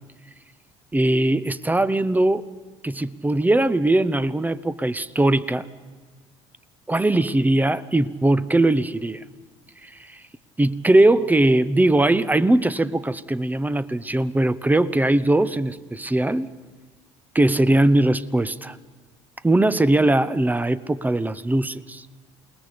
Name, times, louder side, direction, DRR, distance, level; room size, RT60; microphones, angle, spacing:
voice 1, 0.9-2.5 2.8-5.7 6.9-9.2 9.8-10.2 10.6-16.5 17.3-18.8 19.4-22.1, right 1 dB, 10° right, 16 dB, 0.8 m, -20 dB
28.0 x 19.5 x 5.2 m, 1.4 s
hypercardioid pair, 70°, 15 cm